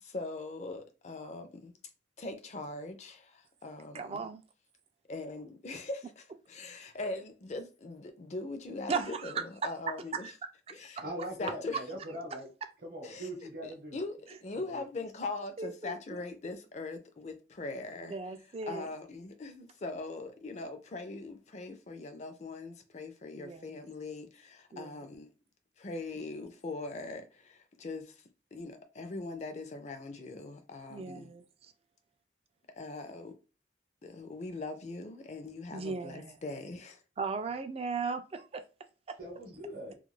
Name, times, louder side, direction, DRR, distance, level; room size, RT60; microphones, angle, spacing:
voice 1, 0.0-1.8 2.2-4.2 5.1-10.3 10.7-11.0 11.4-11.8 12.1-12.2 13.0-13.3 13.6-18.2 18.7-25.3 25.8-28.2 28.5-31.3 32.8-33.4 34.0-37.0, left 3 dB, 40° left, 0.5 m, -41 dB
voice 2, 3.9-4.4 8.9-9.3 10.2-10.3 11.0-11.1 15.6-16.0 18.1-18.9 23.4-23.7 24.7-25.0 30.9-31.4 35.7-36.4 37.2-38.6, right 4 dB, 35° right, 0.3 m, -37 dB
voice 3, 11.0-12.5 12.8-14.0 14.5-14.8 39.2-40.0, equal, 55° right, 0.8 m, -41 dB
2.3 x 2.2 x 3.1 m
head